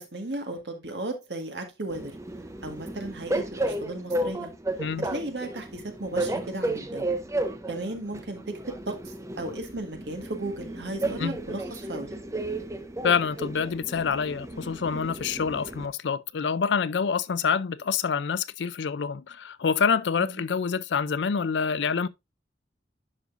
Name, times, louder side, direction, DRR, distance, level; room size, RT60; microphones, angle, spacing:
voice 1, 0.0-2.2 2.6-4.5 5.0-7.1 7.7-12.2 20.2-20.4, right 2 dB, 75° right, 1.7 m, -35 dB
Train, 1.9-15.9, right 1 dB, 15° right, 0.7 m, -33 dB
voice 2, 13.0-22.1, left 6 dB, 85° left, 0.5 m, -27 dB
11.0 x 5.3 x 2.5 m
head